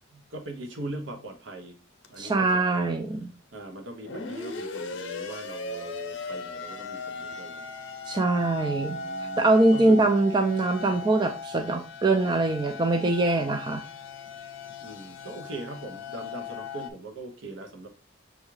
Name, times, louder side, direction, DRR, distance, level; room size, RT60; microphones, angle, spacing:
voice 1, 0.1-1.8 2.1-2.9 3.5-7.7 8.4-10.0 14.8-17.9, right 2 dB, 75° right, 5 dB, 0.8 m, -40 dB
sound 1, 2.0-2.2 4.0-16.9, left 3 dB, 75° left, 0.6 m, -38 dB
voice 2, 2.2-3.3 8.1-9.0 9.4-13.8, right 2 dB, 25° right, 6 dB, 0.3 m, -23 dB
6.2 x 2.4 x 3.1 m, 0.34 s
head